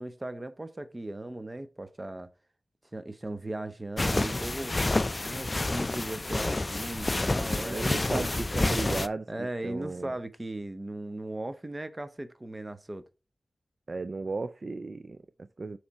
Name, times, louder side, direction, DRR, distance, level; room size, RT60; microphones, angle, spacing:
voice 1, 0.0-2.3 2.9-4.7 5.2-8.6 9.3-13.0, right 1 dB, 30° right, 0.8 m, -38 dB
sound 1, 4.0-9.1, left 2 dB, 35° left, 0.3 m, -29 dB
voice 2, 7.6-10.1 13.9-15.8, right 3 dB, 55° right, 0.3 m, -35 dB
7.0 x 3.3 x 4.7 m
wide cardioid pair, 60°, 0 cm